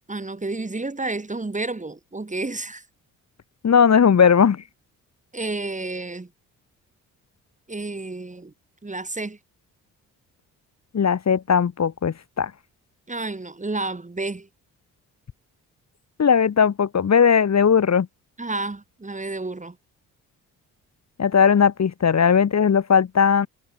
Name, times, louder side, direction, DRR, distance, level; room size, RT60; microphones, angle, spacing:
voice 1, 0.1-2.9 5.3-6.3 7.7-8.5 8.8-9.4 13.1-14.5 18.4-19.8, right 2 dB, 20° right, 2.0 m, -30 dB
voice 2, 3.6-4.6 10.9-12.5 16.2-18.1 21.2-23.5, left 7 dB, 40° left, 1.5 m, -18 dB
hypercardioid pair, 45°, 41 cm